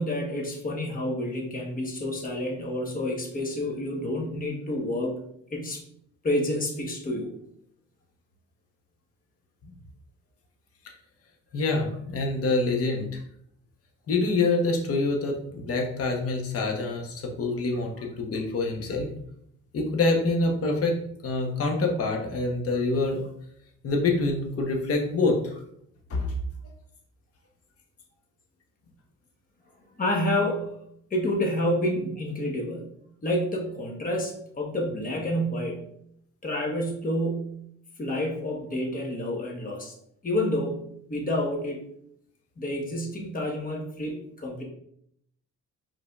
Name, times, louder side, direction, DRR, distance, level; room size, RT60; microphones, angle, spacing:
voice 1, 0.0-5.1 5.5-5.8 6.2-7.3 30.0-30.8 31.1-32.9 33.2-35.9 36.4-37.6 38.0-39.9 40.2-41.8 42.6-44.6, left 1 dB, 30° left, 0 dB, 1.1 m, -29 dB
voice 2, 11.5-13.2 14.1-19.1 19.7-21.0 21.2-23.2 23.8-25.5 26.1-26.4, left 3 dB, 50° left, 1 dB, 1.0 m, -26 dB
4.9 x 3.8 x 2.4 m, 0.70 s
cardioid pair, 90°, 30 cm